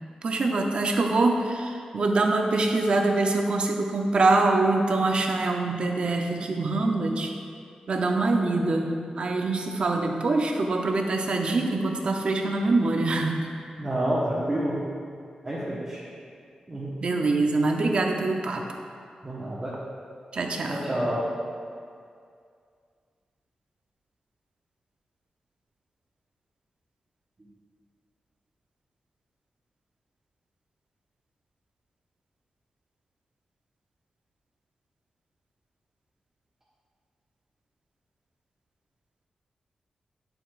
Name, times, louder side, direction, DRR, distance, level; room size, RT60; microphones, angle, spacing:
voice 1, 0.2-7.3 7.9-13.5 17.0-18.6 20.3-21.0, right 2 dB, 50° right, 3 dB, 0.7 m, -24 dB
voice 2, 13.8-14.8 15.4-16.0 16.7-16.9 19.2-19.7 20.7-21.3, right 1 dB, 25° right, -10 dB, 1.2 m, -28 dB
9.0 x 7.7 x 2.5 m, 2.3 s
wide cardioid pair, 160°, 2 cm